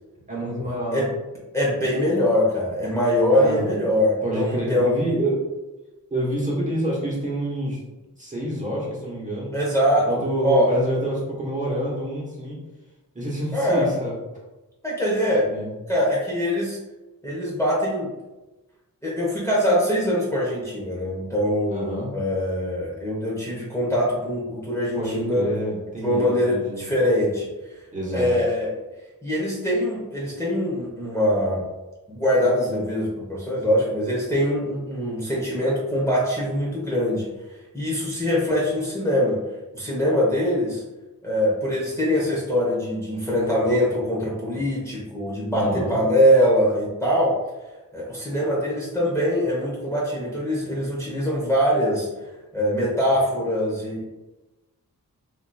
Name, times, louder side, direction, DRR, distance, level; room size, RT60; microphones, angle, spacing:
voice 1, 0.3-1.1 3.3-3.7 4.2-5.4 6.1-7.8 8.2-9.5 10.1-12.6 13.1-14.1 15.5-15.7 21.7-22.1 24.9-26.8 27.9-28.3 45.5-45.9, right 1 dB, 20° right, -5 dB, 1.1 m, -27 dB
voice 2, 1.5-4.9 9.5-10.1 10.4-10.7 13.5-13.9 14.8-15.5 15.9-16.8 17.2-18.1 19.0-25.5 26.0-27.5 28.1-28.7 29.2-31.6 32.1-37.3 37.7-39.4 39.7-40.8 41.2-47.3 47.9-52.1 52.5-54.0, equal, 10° left, -6 dB, 0.9 m, -23 dB
3.9 x 2.9 x 2.3 m, 1.1 s
wide cardioid pair, 100°, 36 cm